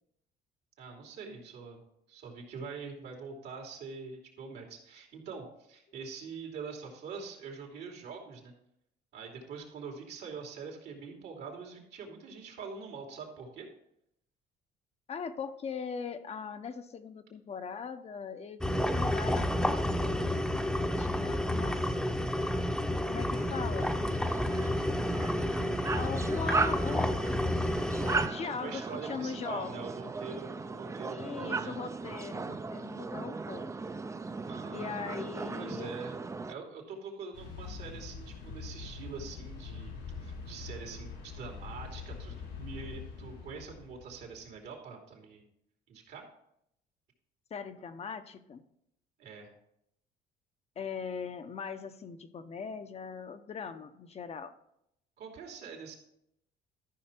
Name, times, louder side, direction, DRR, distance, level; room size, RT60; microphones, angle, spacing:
voice 1, 0.8-1.8 2.1-8.5 9.1-13.7 28.4-31.8 34.5-35.0 35.5-36.2 36.5-39.9 40.2-45.5 45.9-46.2 49.2-49.5 55.2-56.0, right 5 dB, 75° right, 1 dB, 2.8 m, -44 dB
voice 2, 15.1-20.4 20.8-21.9 23.1-24.0 25.9-27.2 28.0-29.8 31.1-33.7 34.7-35.9 47.5-48.6 50.8-54.6, left 6 dB, 40° left, 9 dB, 0.7 m, -40 dB
sound 1, 18.6-28.3, left 1 dB, 5° left, 0.8 m, -30 dB
sound 2, 23.3-36.5, right 4 dB, 15° right, 0.5 m, -37 dB
sound 3, 37.3-44.5, left 5 dB, 85° left, 4.1 m, -44 dB
13.0 x 5.7 x 4.4 m, 0.77 s
cardioid pair, 110°, 17 cm